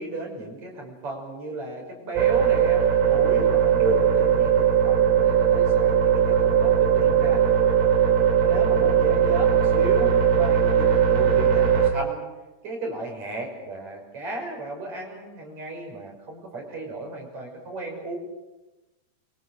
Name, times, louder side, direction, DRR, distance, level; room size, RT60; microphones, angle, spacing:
voice 1, 0.0-7.4 8.4-12.3 12.6-18.2, right 2 dB, 45° right, 0 dB, 7.2 m, -34 dB
sound 1, 2.2-11.9, right 8 dB, 85° right, 4.4 m, -19 dB
28.5 x 25.0 x 6.6 m, 1.1 s
omnidirectional pair, 4.5 m